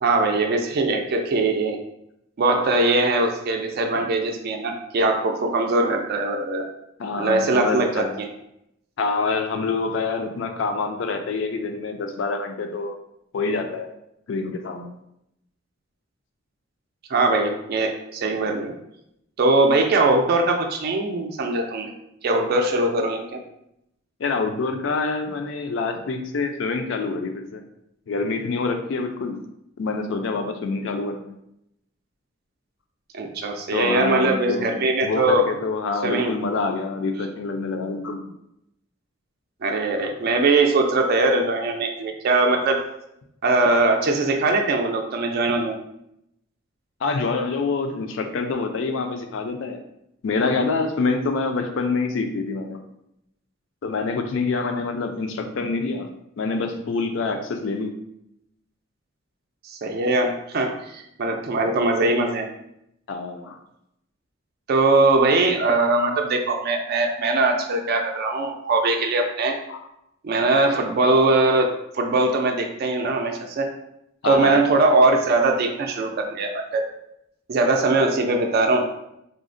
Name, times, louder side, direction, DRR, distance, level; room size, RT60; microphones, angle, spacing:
voice 1, 0.0-1.8 2.4-6.7 7.2-8.3 17.1-18.7 19.4-21.9 22.2-23.4 33.1-35.4 36.0-36.3 39.6-42.8 43.4-45.8 59.6-62.5 64.7-69.6 70.2-71.7 71.9-73.7 74.2-76.8 77.5-78.9, right 2 dB, 50° right, 3 dB, 0.4 m, -21 dB
voice 2, 7.0-8.2 9.0-13.0 13.3-13.9 14.3-14.9 24.2-27.6 28.1-29.4 29.8-31.3 33.7-34.7 35.0-38.3 47.0-49.8 50.2-52.8 53.8-56.1 56.4-57.9 63.1-63.6 68.2-68.3 69.7-69.8 74.2-74.6, left 4 dB, 70° left, 6 dB, 0.4 m, -26 dB
3.7 x 2.0 x 2.5 m, 0.80 s
head